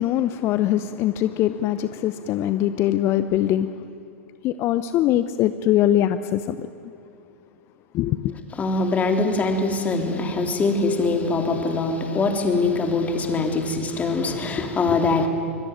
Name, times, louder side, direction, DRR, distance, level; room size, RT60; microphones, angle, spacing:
voice 1, 0.0-3.8 4.4-6.7 7.9-8.3, left 12 dB, 35° left, 0.8 m, -22 dB
voice 2, 8.5-15.3, left 3 dB, 20° left, 3.3 m, -23 dB
25.5 x 21.5 x 9.4 m
figure-of-eight pair, 100°, 7 cm